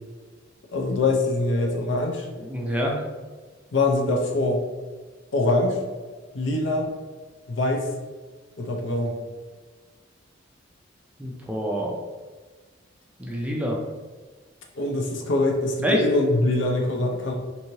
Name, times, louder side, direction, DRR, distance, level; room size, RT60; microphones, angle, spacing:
voice 1, 0.7-2.3 3.7-4.6 5.3-5.8 6.3-6.9 7.5-7.8 8.6-9.1 14.8-17.3, left 2 dB, 65° left, 1 dB, 0.6 m, -23 dB
voice 2, 2.4-3.0 11.2-12.0 13.2-13.8 15.8-16.0, equal, 5° right, -1 dB, 0.3 m, -27 dB
3.0 x 2.7 x 2.7 m, 1.3 s
head